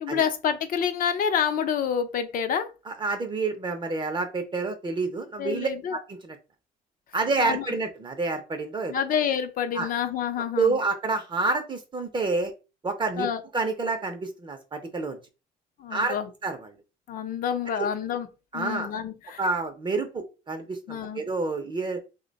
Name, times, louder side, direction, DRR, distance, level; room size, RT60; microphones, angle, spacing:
voice 1, 0.0-2.7 5.4-6.0 7.4-7.7 8.9-10.8 13.2-13.4 15.8-16.3 17.1-18.3 18.5-19.4 20.9-21.2, left 8 dB, 55° left, 0.6 m, -28 dB
voice 2, 2.9-6.4 7.1-9.0 9.7-9.9 10.5-12.5 12.8-13.3 13.5-15.2 15.9-16.2 16.4-16.7 17.8-17.9 18.5-18.9 19.4-22.0, right 3 dB, 25° right, 0.6 m, -28 dB
2.8 x 2.1 x 3.9 m
cardioid pair, 110°, 17 cm